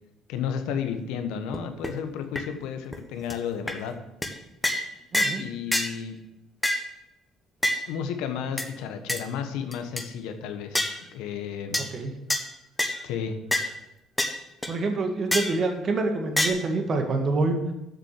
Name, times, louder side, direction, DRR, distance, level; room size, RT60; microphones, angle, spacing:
voice 1, 0.3-3.9 5.4-6.2 7.9-11.8 13.0-13.4, left 7 dB, 80° left, 7 dB, 1.1 m, -32 dB
sound 1, 1.5-1.6 1.8-1.9 2.4-2.5 2.9-3.0 3.3-3.4 3.7-3.8 4.2-4.3 4.6-4.9 5.1-5.4 5.7-5.9 6.6-6.9 7.6-7.8 8.6-8.7 9.1-9.2 9.7-10.0 10.7-11.0 11.7-11.9 12.3-12.4 12.8-13.0 13.5-13.7 14.2-14.3 14.6-14.7 15.3-15.6 16.4-16.5, left 1 dB, 10° left, 1.3 m, -26 dB
voice 2, 5.1-5.4 11.9-12.1 14.7-17.6, right 3 dB, 45° right, 4 dB, 1.8 m, -26 dB
7.5 x 6.3 x 6.7 m, 0.88 s
supercardioid pair, 70°, 0 cm